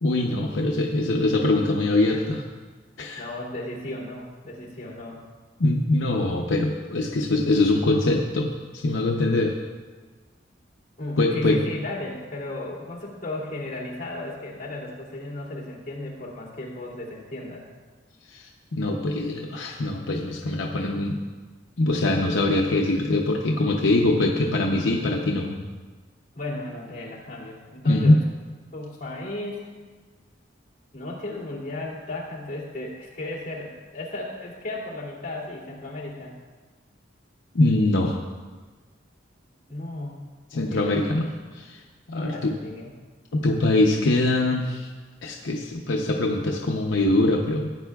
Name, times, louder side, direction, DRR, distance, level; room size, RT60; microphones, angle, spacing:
voice 1, 0.0-2.4 3.0-3.2 5.6-9.6 11.2-11.6 18.3-21.2 21.8-25.6 27.9-28.2 37.5-38.2 40.5-41.3 41.6-41.8 42.1-42.5 43.3-44.9 45.2-47.7, left 2 dB, 80° left, 0 dB, 0.7 m, -23 dB
voice 2, 3.2-5.2 11.0-17.6 26.3-28.2 28.7-29.7 30.9-36.3 39.7-40.1 40.5-41.3 42.2-42.9, left 2 dB, 40° left, -5 dB, 2.6 m, -35 dB
16.0 x 9.2 x 2.4 m, 1.4 s
head